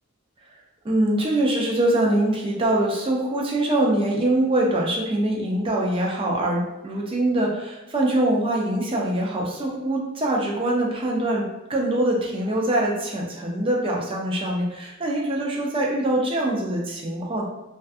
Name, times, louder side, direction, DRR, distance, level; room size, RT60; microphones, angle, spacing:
voice 1, 0.8-17.4, right 1 dB, 25° right, -2 dB, 0.4 m, -23 dB
2.5 x 2.3 x 2.4 m, 0.99 s
head